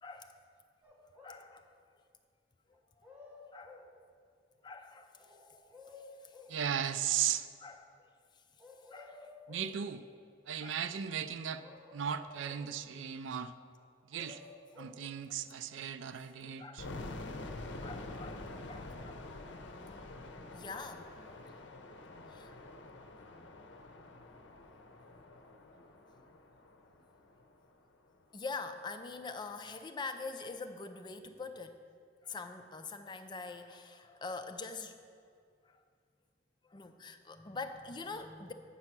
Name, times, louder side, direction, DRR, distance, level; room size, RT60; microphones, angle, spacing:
voice 1, 0.0-0.4 1.2-1.7 2.7-3.1 3.5-3.9 4.6-5.4 5.9-6.4 7.6-8.1 8.9-9.3 10.6-10.8 12.9-13.0 16.6-17.0 17.8-19.3 20.5-21.2 22.3-22.6 28.3-31.8 32.2-35.0 35.6-35.8 36.6-38.5, left 4 dB, 25° left, 8 dB, 0.4 m, -44 dB
sound 1, 0.8-1.5 2.7-3.9 5.2-6.6 8.6-9.8 11.6-12.8 13.8-15.0 16.3-16.4, left 3 dB, 10° right, 1.0 m, -54 dB
voice 2, 6.5-7.5 9.5-10.0 10.5-11.6 11.9-13.5 14.1-14.4 14.8-16.9, right 8 dB, 80° right, 11 dB, 0.4 m, -36 dB
sound 2, 16.8-27.7, left 2 dB, 65° left, 0.7 m, -47 dB
8.5 x 5.5 x 5.9 m, 2.2 s
head